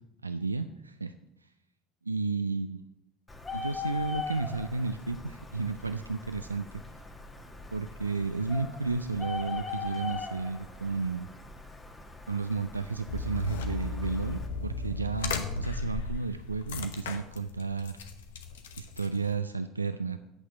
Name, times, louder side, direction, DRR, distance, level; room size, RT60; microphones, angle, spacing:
voice 1, 0.2-1.1 2.1-2.8 3.5-6.7 7.7-11.3 12.3-18.0 18.8-20.2, right 4 dB, 90° right, 10 dB, 0.3 m, -32 dB
Bird, 3.3-14.5, left 4 dB, 20° left, 1.7 m, -41 dB
sound 1, 13.1-19.4, left 4 dB, 75° left, 0.9 m, -36 dB
8.5 x 6.4 x 7.0 m, 0.85 s
figure-of-eight pair, 65°, 0 cm